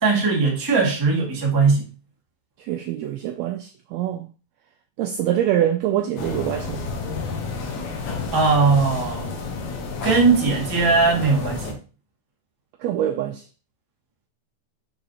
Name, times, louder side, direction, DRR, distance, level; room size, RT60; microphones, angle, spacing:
voice 1, 0.0-1.9 8.3-9.3 10.0-11.8, right 4 dB, 20° right, 0.5 m, -19 dB
voice 2, 2.6-4.3 5.0-6.8 12.8-13.4, right 11 dB, 85° right, 1.5 m, -24 dB
sound 1, 6.2-11.7, left 4 dB, 75° left, 2.5 m, -30 dB
6.6 x 5.3 x 2.8 m
omnidirectional pair, 3.6 m